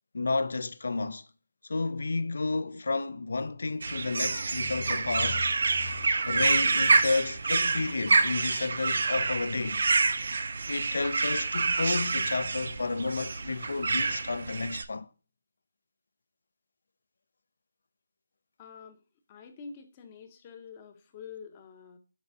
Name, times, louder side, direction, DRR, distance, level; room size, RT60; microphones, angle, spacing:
voice 1, 0.1-1.3 1.7-5.4 6.3-9.9 10.7-15.1, left 3 dB, 65° left, 0.4 m, -31 dB
sound 1, 3.8-14.8, right 4 dB, 60° right, 0.4 m, -27 dB
sound 2, 4.5-7.8, left 4 dB, 40° right, 0.8 m, -44 dB
voice 2, 18.6-19.0 19.3-22.0, left 6 dB, 25° left, 0.7 m, -47 dB
6.1 x 3.3 x 2.6 m
figure-of-eight pair, 155°, 0 cm